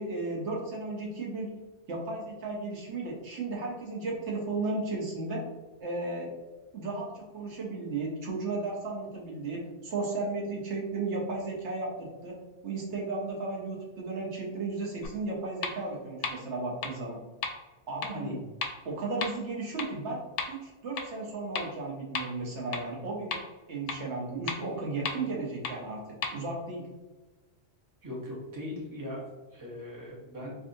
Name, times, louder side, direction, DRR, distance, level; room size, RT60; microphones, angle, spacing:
voice 1, 0.0-1.5 1.9-5.4 5.8-6.3 6.7-17.2 17.9-18.3 18.8-20.2 20.5-23.4 23.7-26.0 26.3-26.9, right 3 dB, 65° right, -3 dB, 1.1 m, -34 dB
sound 1, 15.0-15.1 15.6-15.7 16.2-16.3 16.8-16.9 17.4-17.5 18.0-18.1 18.6-18.7 19.2-19.3 19.8-19.9 20.4-20.5 21.0-21.1 21.6-21.7 22.1-22.2 22.7-22.8 23.3-23.4 23.9-24.0 24.5-24.6 25.1-25.2 25.6-25.7 26.2-26.3, left 5 dB, 75° left, 0.9 m, -32 dB
voice 2, 18.1-18.5 28.0-30.6, left 1 dB, 15° right, -4 dB, 0.9 m, -39 dB
4.6 x 2.7 x 2.6 m, 1.2 s
omnidirectional pair, 1.3 m